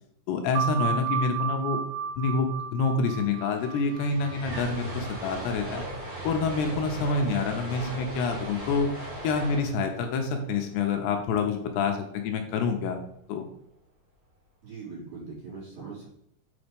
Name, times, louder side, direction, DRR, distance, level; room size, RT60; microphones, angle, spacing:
voice 1, 0.3-1.8 2.2-5.8 6.2-8.9 9.2-13.0 13.3-13.5, left 4 dB, 80° left, 4 dB, 2.7 m, -27 dB
sound 1, 0.6-5.7, right 6 dB, 90° right, 3.2 m, -33 dB
sound 2, 2.9-3.0 3.2-11.4, right 1 dB, 15° right, 1.7 m, -38 dB
voice 2, 14.6-16.1, right 4 dB, 45° right, -8 dB, 4.3 m, -41 dB
7.9 x 4.1 x 5.2 m, 0.72 s
omnidirectional pair, 4.9 m